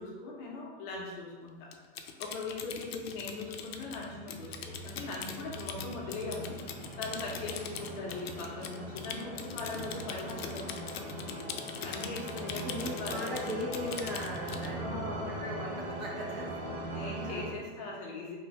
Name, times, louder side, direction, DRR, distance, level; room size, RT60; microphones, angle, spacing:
voice 1, 0.0-6.6 7.0-11.4 11.8-13.6 14.8-15.4 15.6-15.7 16.9-18.4, left 3 dB, 35° left, -3 dB, 0.7 m, -40 dB
Typing, 1.7-14.7, left 7 dB, 85° left, 0.5 m, -42 dB
sound 1, 3.1-17.5, right 1 dB, 25° right, 0.6 m, -41 dB
voice 2, 12.6-16.8 17.2-17.5, equal, 50° right, -3 dB, 1.0 m, -39 dB
3.1 x 2.7 x 3.1 m, 1.4 s
supercardioid pair, 155°, 30 cm